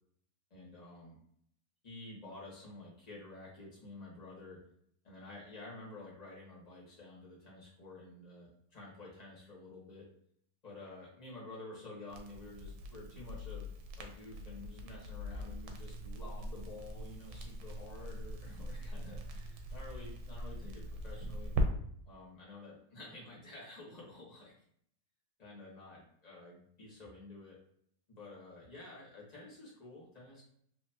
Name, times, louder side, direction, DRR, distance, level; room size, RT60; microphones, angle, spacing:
voice 1, 0.5-1.2 1.8-4.6 5.0-10.1 10.6-13.7 14.0-21.5 22.0-24.5 25.4-27.6 28.1-30.4, left 2 dB, 25° left, -5 dB, 1.5 m, -50 dB
Crackle, 12.1-21.7, equal, 90° right, 1.3 m, -41 dB
4.1 x 2.8 x 2.8 m, 0.66 s
omnidirectional pair, 1.8 m